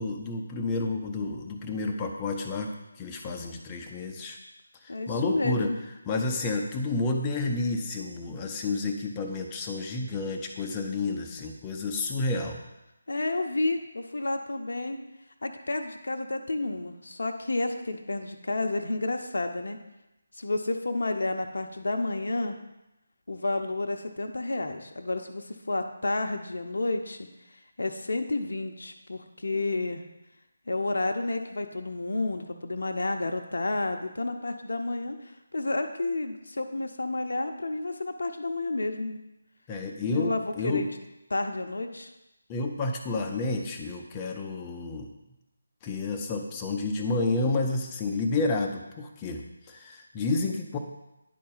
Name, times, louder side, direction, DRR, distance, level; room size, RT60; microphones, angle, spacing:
voice 1, 0.0-2.7 3.0-4.4 5.1-5.7 6.1-12.6 39.7-40.9 42.5-45.1 45.8-50.8, left 3 dB, 20° left, 2 dB, 0.7 m, -30 dB
voice 2, 4.9-5.8 13.1-15.0 15.4-19.8 20.4-22.6 23.3-27.2 27.8-30.0 30.7-39.2 40.1-40.9 41.3-42.1, left 2 dB, 70° left, 6 dB, 0.7 m, -30 dB
10.0 x 4.0 x 3.9 m, 0.94 s
figure-of-eight pair, 155°, 0 cm